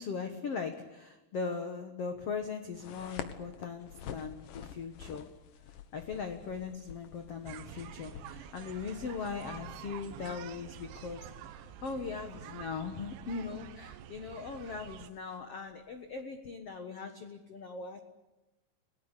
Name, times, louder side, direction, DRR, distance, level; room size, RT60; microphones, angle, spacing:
voice 1, 0.0-5.3 5.9-18.0, left 5 dB, 80° left, 7 dB, 1.3 m, -39 dB
sound 1, 2.7-16.2, left 8 dB, 65° left, 2.3 m, -50 dB
sound 2, 7.5-15.1, right 11 dB, 85° right, 3.4 m, -48 dB
29.5 x 19.0 x 8.3 m, 1.1 s
omnidirectional pair, 5.2 m